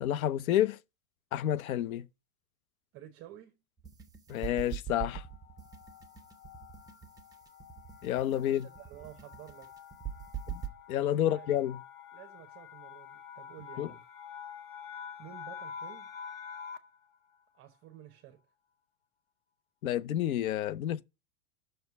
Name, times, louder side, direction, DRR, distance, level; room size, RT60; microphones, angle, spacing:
voice 1, 0.0-0.8 1.3-2.0 4.3-5.2 8.0-8.7 10.5-10.6 10.9-11.8 13.8-13.9 19.8-21.0, left 12 dB, 70° left, 0.7 m, -29 dB
voice 2, 2.9-3.6 8.3-9.7 11.2-11.6 12.1-14.0 15.2-16.1 17.5-18.4, right 12 dB, 30° right, 0.9 m, -51 dB
sound 1, 3.8-10.7, right 9 dB, 10° right, 1.0 m, -42 dB
sound 2, 4.9-17.0, left 7 dB, 25° left, 0.6 m, -48 dB
6.4 x 4.5 x 6.7 m
hypercardioid pair, 130°, 43 cm